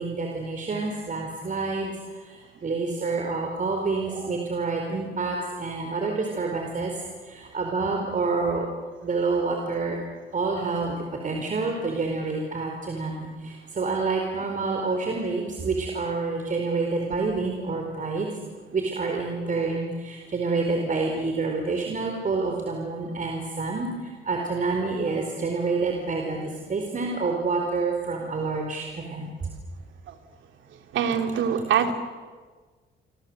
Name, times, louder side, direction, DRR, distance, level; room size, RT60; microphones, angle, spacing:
voice 1, 0.0-6.9 7.2-8.7 9.0-10.0 10.3-18.3 18.7-29.3, right 3 dB, 40° right, 2 dB, 4.5 m, -28 dB
voice 2, 30.9-31.9, right 8 dB, 75° right, 7 dB, 2.6 m, -23 dB
28.0 x 25.0 x 8.0 m, 1.4 s
cardioid pair, 90°, 20 cm